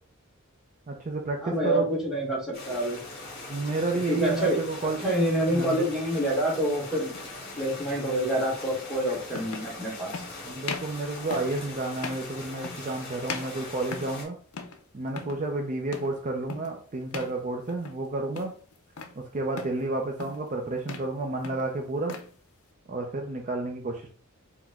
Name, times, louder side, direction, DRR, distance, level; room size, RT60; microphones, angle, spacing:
voice 1, 0.9-1.9 3.5-5.0 5.5-5.8 10.5-14.4 14.9-18.5 19.2-22.2 22.9-24.1, right 2 dB, 35° right, 1 dB, 0.5 m, -31 dB
voice 2, 1.4-3.0 4.1-4.6 5.0-7.1 7.6-10.1, equal, ahead, -4 dB, 1.2 m, -27 dB
sound 1, 2.5-14.2, left 2 dB, 50° left, 1.8 m, -41 dB
sound 2, 7.1-7.3 8.6-8.7 9.3-9.7 10.1-10.3 10.6-11.0 11.3-11.6 12.0-12.3 12.6-13.0 13.3-14.2 14.5-14.8 15.1-15.4 15.9-16.2 16.5-16.8 17.1-17.4 17.7-18.1 18.3-19.2 19.6-19.8 20.2-20.5 20.8-21.1 21.4-22.3, left 5 dB, 80° left, 0.5 m, -39 dB
4.9 x 2.1 x 3.5 m, 0.44 s
head